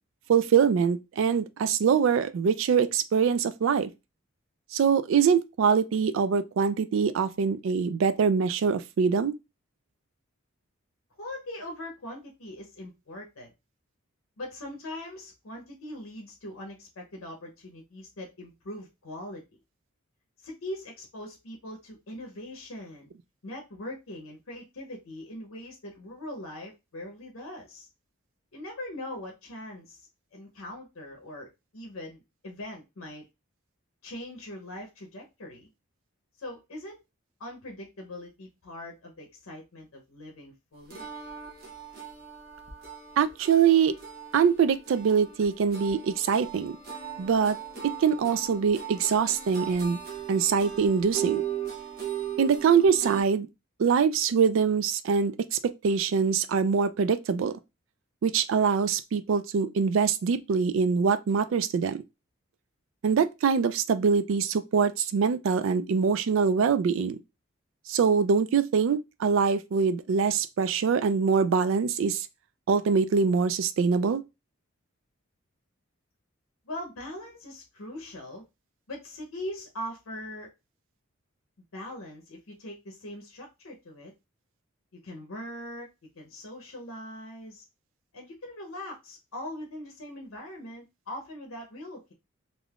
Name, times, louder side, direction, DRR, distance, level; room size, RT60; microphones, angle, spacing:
voice 1, 0.3-3.9 4.7-9.3 43.2-43.9 44.3-46.8 47.2-47.6 48.0-50.0 50.3-51.4 52.4-53.5 53.8-57.6 58.2-62.0 63.0-67.2 67.9-72.3 72.7-74.2, right 6 dB, 70° right, 0.3 m, -24 dB
voice 2, 11.2-13.5 14.4-19.4 20.4-23.1 23.4-27.9 28.5-30.0 30.3-31.5 31.7-33.2 34.0-35.7 36.4-37.0 37.4-41.1 76.7-78.4 78.9-80.5 81.7-84.1 85.0-85.9 86.2-87.6 88.1-92.1, left 1 dB, 80° left, 0.7 m, -41 dB
sound 1, 40.9-53.2, right 9 dB, 45° right, 0.8 m, -38 dB
3.4 x 2.5 x 2.3 m
head